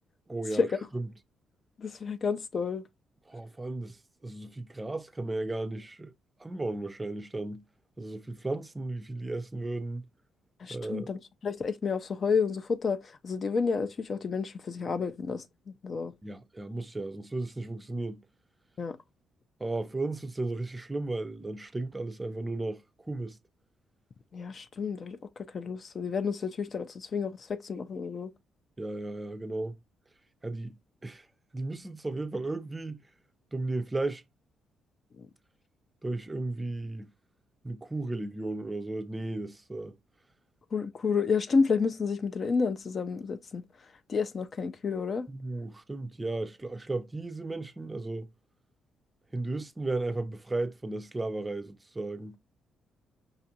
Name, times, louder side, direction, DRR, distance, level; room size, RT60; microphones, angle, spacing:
voice 1, 0.3-1.1 3.3-6.1 6.4-7.7 8.0-10.1 10.7-11.1 16.2-18.2 19.6-23.4 28.8-29.8 30.4-31.3 31.5-33.0 33.5-34.2 36.0-37.1 37.6-40.0 45.3-48.3 49.3-52.4, right 2 dB, 15° right, 0.4 m, -35 dB
voice 2, 1.8-2.8 10.6-16.1 18.8-19.0 24.3-28.3 35.2-35.3 40.7-43.6 44.1-45.3, left 5 dB, 45° left, 0.4 m, -30 dB
5.2 x 2.4 x 2.7 m
cardioid pair, 90°, 0 cm